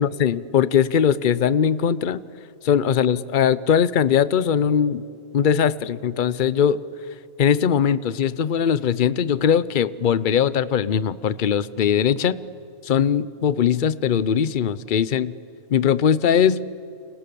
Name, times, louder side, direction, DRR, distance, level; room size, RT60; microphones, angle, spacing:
voice 1, 0.0-2.2 2.6-5.0 5.3-6.8 7.4-12.4 12.8-15.3 15.7-16.6, left 8 dB, 45° left, 17 dB, 0.7 m, -20 dB
30.0 x 27.5 x 7.0 m, 2.6 s
omnidirectional pair, 1.5 m